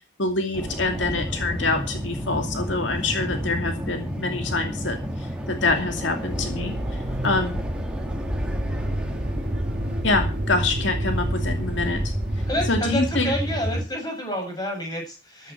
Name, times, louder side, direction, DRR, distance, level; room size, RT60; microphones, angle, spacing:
voice 1, 0.2-7.6 10.0-12.1 12.7-13.3, left 3 dB, 65° left, 5 dB, 2.5 m, -26 dB
sound 1, 0.5-13.8, equal, 5° right, 2.3 m, -30 dB
Motor vehicle (road), 6.2-12.9, right 1 dB, 55° right, 2.3 m, -30 dB
voice 2, 12.5-15.5, equal, 20° left, 2 dB, 7.7 m, -29 dB
14.0 x 13.0 x 4.6 m, 0.33 s
head